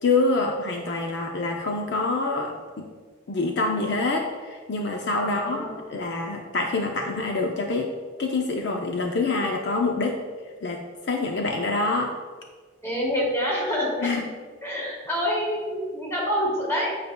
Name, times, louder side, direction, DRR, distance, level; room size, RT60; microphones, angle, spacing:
voice 1, 0.0-2.9 3.3-7.9 8.2-10.2 10.6-12.1 14.0-14.3, left 3 dB, 55° left, 2 dB, 0.5 m, -26 dB
voice 2, 5.2-5.7 12.8-13.9 14.6-16.9, equal, 15° left, -3 dB, 1.4 m, -26 dB
8.9 x 5.1 x 2.2 m, 1.5 s
head